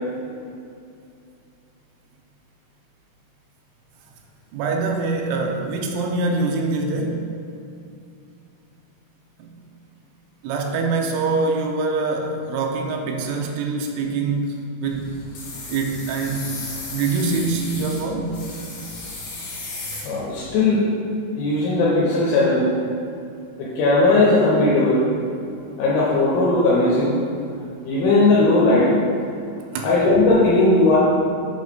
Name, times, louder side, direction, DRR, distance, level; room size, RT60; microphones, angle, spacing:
voice 1, 4.5-7.3 9.4-9.5 10.4-15.2 15.7-16.5 16.9-18.4 29.7-29.9, right 3 dB, 85° right, 1 dB, 3.0 m, -24 dB
sound 1, 14.8-20.6, left 2 dB, 65° left, 3.4 m, -35 dB
voice 2, 20.0-20.8 21.4-22.7 23.6-25.0 25.8-27.2 27.9-28.9 29.8-31.0, left 2 dB, 80° left, -7 dB, 3.2 m, -17 dB
7.9 x 3.2 x 5.1 m, 2.5 s
omnidirectional pair, 5.5 m